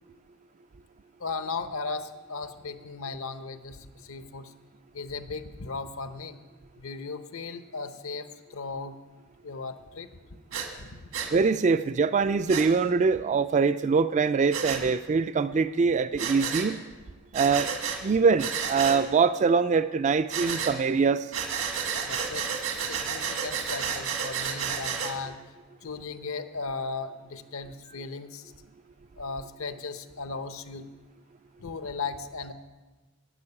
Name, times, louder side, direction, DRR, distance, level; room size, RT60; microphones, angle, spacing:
voice 1, 1.2-4.5 4.9-6.4 6.8-9.0 9.4-10.1 10.8-11.2 14.8-14.9 22.0-25.4 25.8-28.5 29.2-30.9 31.6-32.5, left 4 dB, 75° left, 10 dB, 0.8 m, -37 dB
Breathing, 10.5-10.7 11.1-11.3 12.5-12.7 14.5-14.8 16.2-16.7 17.3-18.0 18.4-19.0 20.3-20.7 21.3-25.1, right 7 dB, 80° right, 1.9 m, -31 dB
voice 2, 11.3-16.8 17.3-17.7 18.0-21.3, right 5 dB, 35° right, 12 dB, 0.3 m, -23 dB
11.0 x 7.7 x 9.8 m, 1.3 s
head